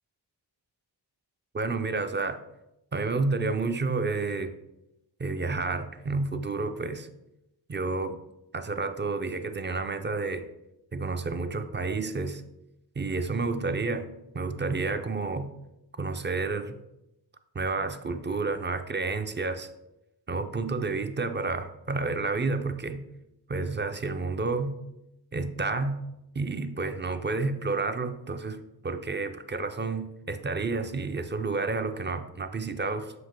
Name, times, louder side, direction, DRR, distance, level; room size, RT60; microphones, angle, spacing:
voice 1, 1.5-2.4 2.9-4.5 5.2-7.1 7.7-8.2 8.5-10.5 10.9-12.4 13.0-15.5 16.0-16.8 17.5-19.7 20.3-23.0 23.5-24.8 25.3-26.0 26.4-33.1, right 3 dB, 30° right, 9 dB, 0.4 m, -30 dB
7.7 x 2.9 x 5.0 m, 0.89 s
wide cardioid pair, 125°, 42 cm